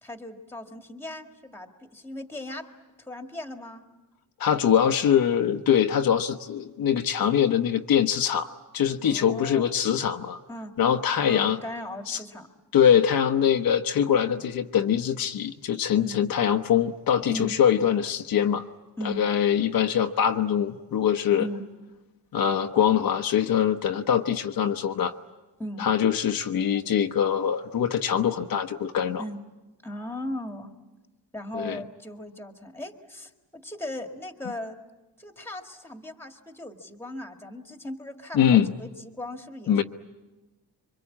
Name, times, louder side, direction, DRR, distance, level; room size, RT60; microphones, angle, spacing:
voice 1, 0.0-2.7 3.0-3.8 9.0-9.7 10.5-10.7 11.3-12.5 16.0-16.2 17.3-17.6 19.0-19.2 21.4-21.6 25.6-25.9 29.2-29.4 29.8-30.7 31.3-34.8 35.2-39.8, left 1 dB, 5° left, 4 dB, 1.9 m, -38 dB
voice 2, 4.4-10.4 10.8-11.6 12.1-12.2 12.7-18.7 19.0-21.5 22.3-25.1 25.8-29.2 31.5-31.8 38.3-38.7 39.7-39.8, left 9 dB, 60° left, 4 dB, 1.1 m, -23 dB
27.0 x 24.5 x 8.5 m, 1.1 s
cardioid pair, 160°, 40 cm